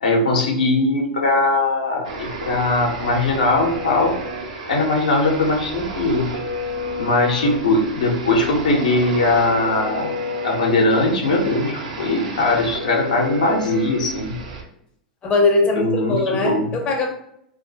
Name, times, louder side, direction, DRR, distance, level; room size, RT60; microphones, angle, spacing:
voice 1, 0.0-4.1 4.7-6.3 6.9-10.1 10.4-14.4 15.8-16.6, left 2 dB, 75° left, 1 dB, 0.6 m, -20 dB
sound 1, 2.0-14.6, equal, 65° right, 0.5 m, -31 dB
voice 2, 6.7-7.1 15.2-17.1, left 3 dB, 25° left, 1 dB, 0.5 m, -21 dB
2.2 x 2.1 x 2.7 m, 0.73 s
figure-of-eight pair, 95°, 4 cm